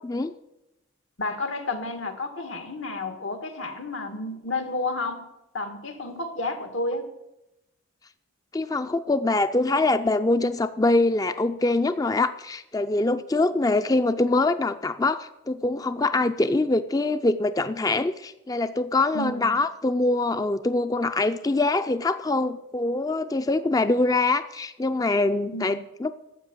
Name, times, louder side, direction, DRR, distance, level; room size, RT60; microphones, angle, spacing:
voice 1, 1.2-5.3 5.5-7.1 19.1-19.6 25.5-25.8, left 2 dB, 85° left, 7 dB, 1.9 m, -31 dB
voice 2, 8.5-26.1, left 2 dB, 20° left, 11 dB, 0.4 m, -24 dB
13.5 x 8.1 x 9.1 m, 0.92 s
head